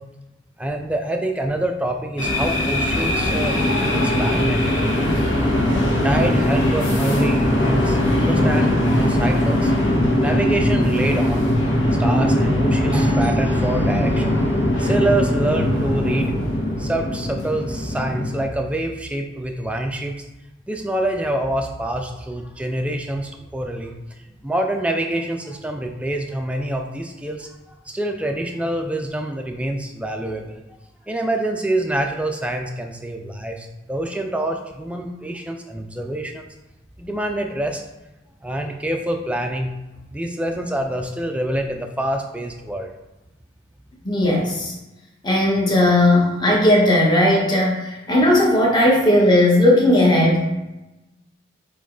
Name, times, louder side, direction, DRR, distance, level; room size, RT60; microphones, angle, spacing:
voice 1, 0.6-5.2 6.0-11.6 12.0-14.4 14.8-16.3 16.8-20.2 20.7-24.0 24.4-30.6 31.1-36.5 37.0-37.8 38.4-39.7 40.1-42.9, right 1 dB, 5° right, 3 dB, 0.5 m, -26 dB
sound 1, 2.2-18.4, left 1 dB, 65° left, 1.8 m, -20 dB
voice 2, 44.0-44.7 45.2-50.5, left 1 dB, 20° left, -3 dB, 1.4 m, -16 dB
7.9 x 3.1 x 3.9 m, 1.0 s
head